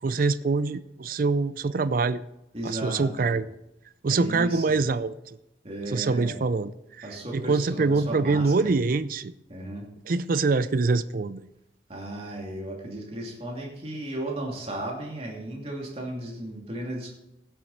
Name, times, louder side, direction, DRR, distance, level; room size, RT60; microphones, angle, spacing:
voice 1, 0.0-2.2 2.6-3.6 4.0-5.4 5.9-6.7 7.0-9.3 10.1-11.4, right 3 dB, 55° right, 0.4 m, -25 dB
voice 2, 2.5-3.4 4.1-4.6 5.6-6.4 7.0-8.7 9.5-9.9 11.9-17.1, right 1 dB, 35° right, 2.7 m, -35 dB
16.0 x 7.6 x 4.2 m
head